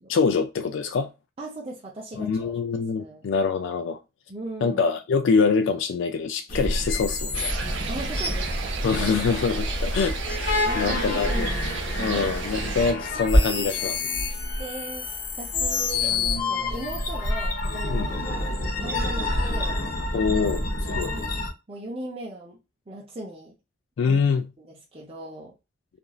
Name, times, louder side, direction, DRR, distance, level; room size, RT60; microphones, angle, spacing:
voice 1, 0.1-1.1 2.2-4.0 4.6-7.6 8.8-11.5 12.0-14.0 17.9-18.1 20.1-21.1 24.0-24.5, left 5 dB, 75° left, 0.3 m, -25 dB
voice 2, 1.4-2.5 3.0-3.3 4.3-4.8 7.9-9.1 9.5-9.6 10.0-10.4 10.6-11.6 12.0-12.3 14.3-19.8 20.9-21.4 21.7-22.6 22.9-23.5 24.0-24.2 24.6-25.5, right 2 dB, 30° right, 0.5 m, -38 dB
sound 1, 6.5-21.5, left 2 dB, 45° left, 0.7 m, -29 dB
sound 2, 7.3-12.9, right 2 dB, 75° right, 0.7 m, -30 dB
sound 3, 9.0-9.1 9.6-9.7 10.1-10.5 11.3-11.5 11.8-12.0 12.6-16.4, equal, 5° left, 1.3 m, -28 dB
3.0 x 2.5 x 2.2 m
head